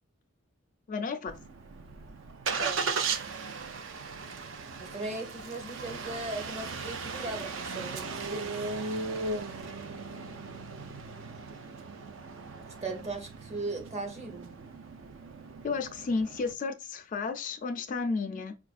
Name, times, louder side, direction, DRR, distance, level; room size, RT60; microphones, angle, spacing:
voice 1, 0.9-1.3 15.6-18.5, left 4 dB, 40° left, 0.3 m, -32 dB
Engine starting, 1.3-16.5, right 4 dB, 60° right, 0.4 m, -37 dB
voice 2, 4.8-8.6 12.8-14.5, right 2 dB, 30° right, 0.8 m, -38 dB
4.6 x 2.4 x 2.4 m
head